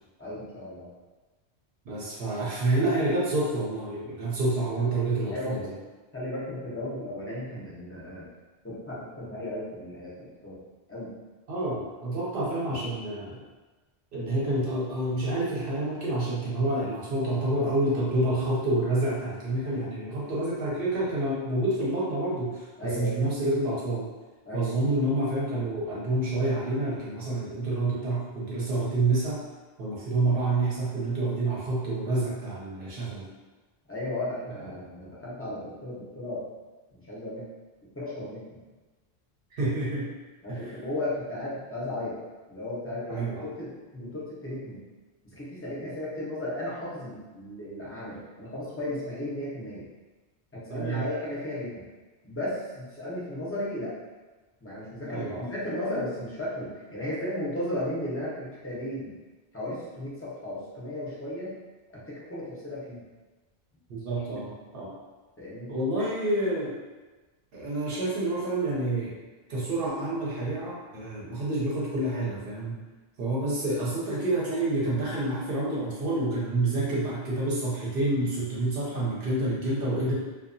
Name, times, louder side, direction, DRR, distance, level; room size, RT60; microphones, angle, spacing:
voice 1, 0.2-0.9 5.3-5.7 6.1-8.3 8.6-10.6 10.9-11.1 22.8-23.2 24.5-24.7 33.9-36.5 36.9-37.4 37.9-38.6 40.4-42.2 42.5-44.8 45.2-49.9 50.5-51.8 52.2-54.0 54.6-59.1 59.5-61.6 61.9-63.0 64.3-64.4 65.4-65.7, left 1 dB, 15° left, -8 dB, 0.5 m, -35 dB
voice 2, 1.8-5.7 11.5-13.4 14.1-24.1 24.5-29.4 29.8-33.3 39.5-40.1 40.5-40.7 43.1-43.5 50.7-51.0 55.1-55.5 63.9-65.0 65.7-66.8 67.5-69.1 69.5-72.8 73.2-80.1, right 2 dB, 60° right, -6 dB, 0.8 m, -28 dB
2.8 x 2.2 x 2.5 m, 1.2 s
omnidirectional pair, 1.1 m